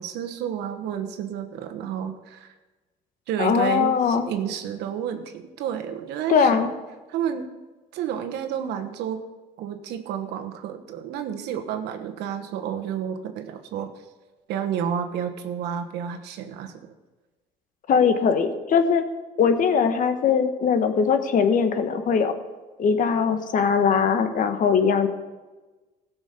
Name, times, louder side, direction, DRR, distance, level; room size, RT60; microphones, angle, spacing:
voice 1, 0.0-2.5 3.3-6.6 7.1-7.5 7.9-9.2 9.6-13.9 14.5-16.8, right 9 dB, 85° right, 7 dB, 1.2 m, -30 dB
voice 2, 3.4-4.3 6.3-6.7 17.9-19.0 19.4-22.3 22.8-25.1, left 6 dB, 50° left, 8 dB, 1.2 m, -21 dB
16.0 x 6.2 x 6.7 m, 1.2 s
cardioid pair, 110°, 17 cm